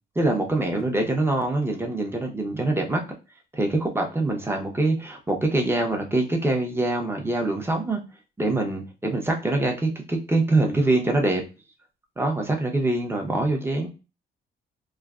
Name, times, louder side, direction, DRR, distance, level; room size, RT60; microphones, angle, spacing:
voice 1, 0.2-3.0 3.5-8.0 8.4-11.4 12.2-13.9, right 2 dB, 10° right, 2 dB, 0.8 m, -24 dB
3.1 x 2.2 x 2.3 m, 0.30 s
cardioid pair, 90°, 20 cm